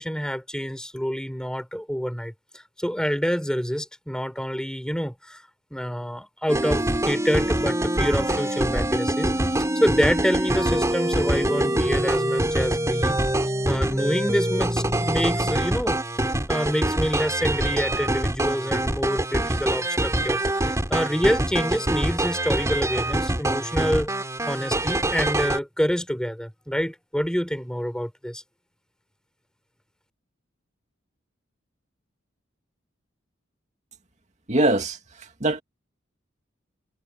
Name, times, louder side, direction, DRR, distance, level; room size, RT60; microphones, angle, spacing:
voice 1, 0.0-5.4 5.7-9.3 9.7-13.2 13.7-16.0 16.5-24.1 24.5-28.4, equal, 5° left, 4.9 m, -27 dB
sound 1, 6.5-25.6, right 1 dB, 15° right, 4.0 m, -24 dB
voice 2, 34.5-35.0 35.4-35.6, right 2 dB, 35° right, 2.5 m, -21 dB
head